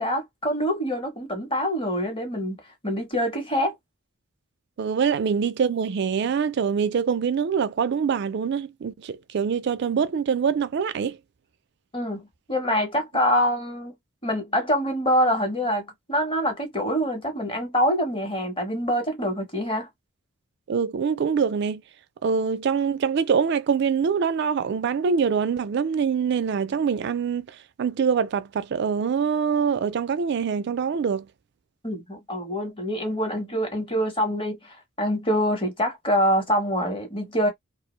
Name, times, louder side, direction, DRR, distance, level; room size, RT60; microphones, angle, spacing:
voice 1, 0.0-2.6 2.8-3.7 11.9-13.9 14.2-19.9 31.8-37.5, equal, 25° left, 0.8 m, -25 dB
voice 2, 4.8-11.2 20.7-21.8 22.2-31.3, right 6 dB, 50° right, 0.3 m, -24 dB
2.4 x 2.0 x 3.0 m
head